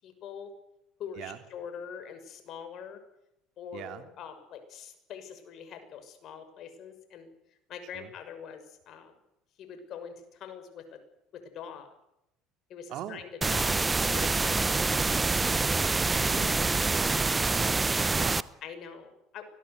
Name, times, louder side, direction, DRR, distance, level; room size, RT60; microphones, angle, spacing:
voice 1, 0.0-0.5 1.0-3.0 3.6-7.3 7.7-9.2 9.6-11.0 11.3-11.9 12.7-15.4 18.6-19.4, left 7 dB, 55° left, 8 dB, 6.0 m, -44 dB
voice 2, 3.7-4.1 7.9-8.1 12.9-13.2 16.1-18.6, right 11 dB, 65° right, 8 dB, 3.1 m, -43 dB
sound 1, 13.4-18.4, right 3 dB, 20° right, 0.9 m, -26 dB
24.5 x 19.0 x 8.0 m, 0.83 s
supercardioid pair, 90°, 0 cm